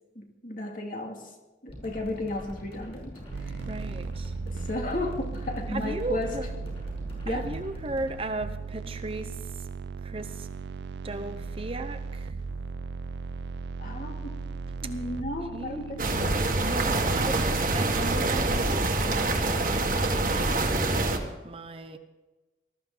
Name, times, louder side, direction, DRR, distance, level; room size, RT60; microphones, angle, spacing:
voice 1, 0.2-1.3 1.6-3.5 4.6-6.3 7.2-7.5 13.8-14.4 14.8-16.4, left 2 dB, 45° left, 1 dB, 2.4 m, -34 dB
sound 1, 1.7-8.1, equal, 30° left, 6.2 m, -43 dB
sound 2, 3.3-18.4, right 4 dB, 70° right, 0.5 m, -37 dB
voice 2, 3.7-4.3 5.7-6.5 7.3-9.7 10.0-10.5 11.0-12.3 14.8-14.9 15.5-15.9 16.6-22.0, right 2 dB, 30° right, 8 dB, 0.8 m, -36 dB
sound 3, 16.0-21.2, right 2 dB, 45° right, 1.7 m, -25 dB
20.0 x 13.5 x 3.9 m, 1.1 s
head